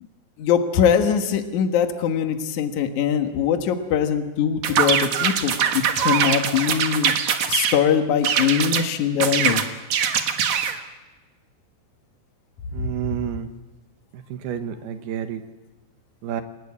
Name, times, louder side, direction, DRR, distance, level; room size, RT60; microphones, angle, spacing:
voice 1, 0.4-7.2 7.5-9.6, left 8 dB, 85° left, 6 dB, 1.7 m, -22 dB
sound 1, 4.6-7.8 8.2-8.9 9.2-10.8, right 8 dB, 85° right, 1.6 m, -22 dB
voice 2, 12.7-13.5 14.3-15.4 16.2-16.4, right 10 dB, 70° right, 8 dB, 2.7 m, -29 dB
28.5 x 19.0 x 8.6 m, 1.2 s
omnidirectional pair, 5.8 m